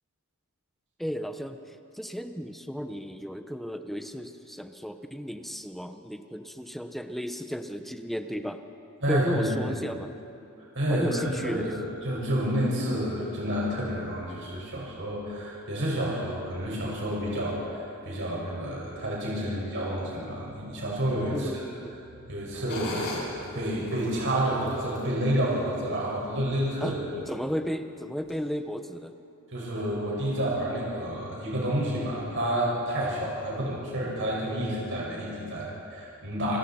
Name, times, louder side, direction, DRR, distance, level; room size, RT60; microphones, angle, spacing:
voice 1, 1.0-8.6 9.1-10.1 10.9-11.7 21.3-22.0 26.8-26.9 27.3-29.1, equal, ahead, 7 dB, 0.9 m, -34 dB
voice 2, 9.0-9.7 10.7-11.1 11.4-11.8 12.0-21.6 22.3-27.0 29.5-36.6, equal, 60° right, -4 dB, 5.8 m, -29 dB
sound 1, 22.7-26.1 26.7-26.8 27.3-27.7 28.2-28.3, left 2 dB, 50° left, 6.4 m, -41 dB
29.5 x 21.0 x 4.4 m, 2.7 s
head